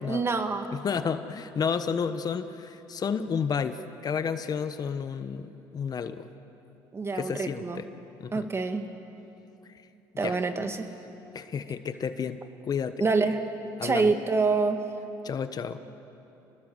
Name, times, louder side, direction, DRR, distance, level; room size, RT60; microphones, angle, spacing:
voice 1, 0.1-0.7 6.9-7.8 8.3-8.8 10.2-10.9 13.0-13.4 13.8-14.8, right 4 dB, 25° right, 6 dB, 2.2 m, -26 dB
voice 2, 0.7-6.3 7.1-7.9 8.2-8.5 10.2-10.4 11.3-13.0 13.8-14.1 15.2-15.8, left 6 dB, 40° left, 10 dB, 1.2 m, -31 dB
29.0 x 20.5 x 8.1 m, 2.9 s
supercardioid pair, 85°, 10 cm